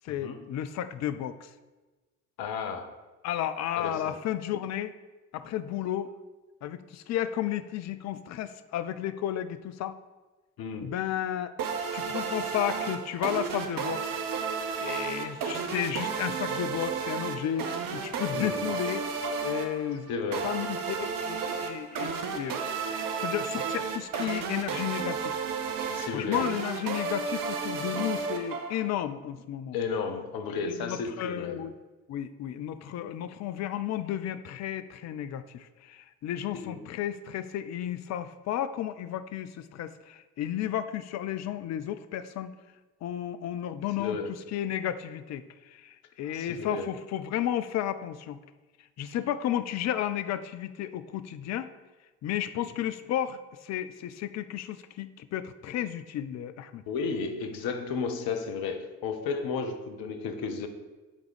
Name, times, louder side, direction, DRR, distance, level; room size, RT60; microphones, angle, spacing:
voice 1, 0.0-1.5 3.2-4.9 5.3-6.1 6.6-10.0 10.8-11.5 11.9-14.0 14.8-19.0 19.4-20.1 20.4-22.6 22.9-25.4 26.1-29.8 30.6-31.8 32.1-42.5 43.0-48.4 49.0-51.7 52.2-56.8, left 11 dB, 40° left, 12 dB, 0.5 m, -33 dB
voice 2, 2.4-2.9 3.8-4.2 10.6-11.0 18.3-18.7 20.1-20.6 25.9-26.5 29.7-31.7 36.5-36.9 44.0-44.4 46.3-47.0 56.9-60.7, left 5 dB, 55° left, 7 dB, 0.9 m, -33 dB
sound 1, 11.6-29.0, right 5 dB, 50° right, 1.0 m, -33 dB
8.8 x 3.7 x 5.1 m, 1.2 s
figure-of-eight pair, 50°, 44 cm